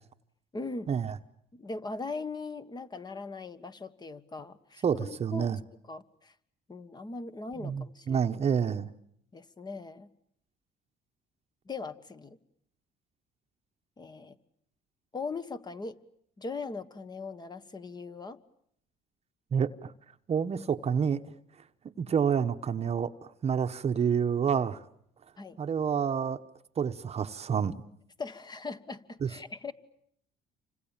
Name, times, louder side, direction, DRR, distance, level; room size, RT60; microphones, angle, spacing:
voice 1, 0.5-0.9 1.5-5.5 5.9-6.3 6.7-8.3 9.3-10.1 11.6-12.4 14.0-14.4 15.1-16.0 16.4-18.4 25.4-25.6 28.2-29.7, left 3 dB, 25° left, 1.6 m, -40 dB
voice 2, 4.8-5.6 7.6-8.9 19.5-19.9 20.3-21.2 22.0-23.1 23.4-24.8 25.6-26.4 26.8-27.8 29.2-29.3, right 7 dB, 40° right, 1.1 m, -28 dB
29.0 x 26.0 x 7.4 m
cardioid pair, 110°, 17 cm